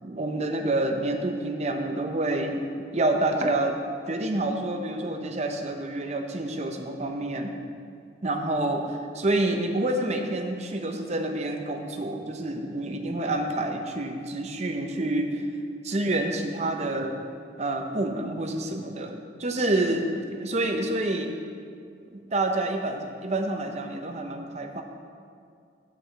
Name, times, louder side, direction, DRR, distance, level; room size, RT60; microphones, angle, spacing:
voice 1, 0.0-2.6 2.9-3.8 4.1-7.6 8.2-15.4 15.8-17.2 17.6-21.3 22.1-24.8, right 2 dB, 35° right, 4 dB, 0.7 m, -28 dB
7.8 x 4.8 x 7.0 m, 2.3 s
head